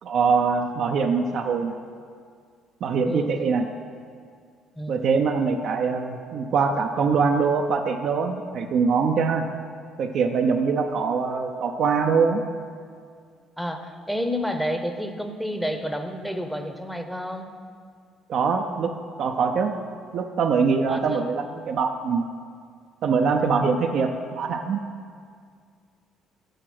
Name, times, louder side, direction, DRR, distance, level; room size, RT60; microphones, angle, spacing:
voice 1, 0.0-1.8 2.8-3.7 4.9-9.4 10.0-12.4 18.3-18.9 19.2-19.7 20.1-22.2 23.0-24.1 24.4-24.8, right 5 dB, 60° right, 3 dB, 0.5 m, -23 dB
voice 2, 13.6-17.5 20.9-21.2, equal, ahead, 6 dB, 0.8 m, -30 dB
6.6 x 6.4 x 6.0 m, 2.1 s
supercardioid pair, 65°, 0 cm